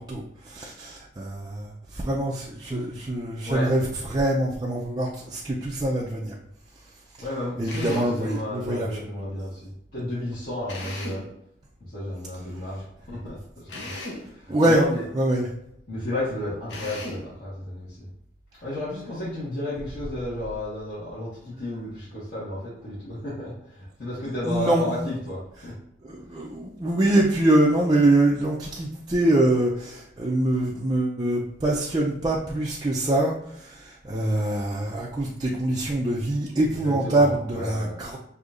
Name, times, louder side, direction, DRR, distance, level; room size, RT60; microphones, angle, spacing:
voice 1, 0.0-6.3 7.6-9.1 14.5-14.8 15.1-15.5 24.5-24.9 26.0-38.2, right 1 dB, 25° right, -4 dB, 0.5 m, -24 dB
voice 2, 7.2-11.2 11.8-15.1 15.9-18.1 18.6-25.7 36.7-38.0, left 1 dB, 60° left, -11 dB, 1.6 m, -33 dB
Drill, 7.7-8.2 10.7-11.3 13.7-14.3 16.7-17.3, left 2 dB, 75° left, 0.9 m, -36 dB
6.4 x 2.7 x 2.5 m, 0.75 s
head